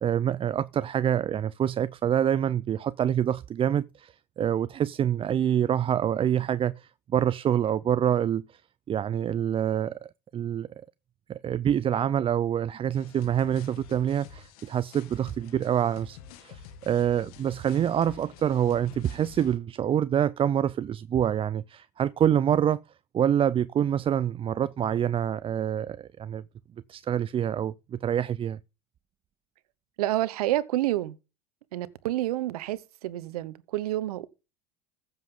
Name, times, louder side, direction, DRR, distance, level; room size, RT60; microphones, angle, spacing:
voice 1, 0.0-8.6 8.9-10.7 11.3-22.8 23.1-26.4 26.9-28.6, right 9 dB, 30° right, 0.5 m, -26 dB
sound 1, 12.9-19.6, left 7 dB, 75° left, 2.1 m, -48 dB
voice 2, 30.0-31.2 31.7-34.3, right 15 dB, 80° right, 1.0 m, -29 dB
14.5 x 7.4 x 3.8 m
hypercardioid pair, 95°, 19 cm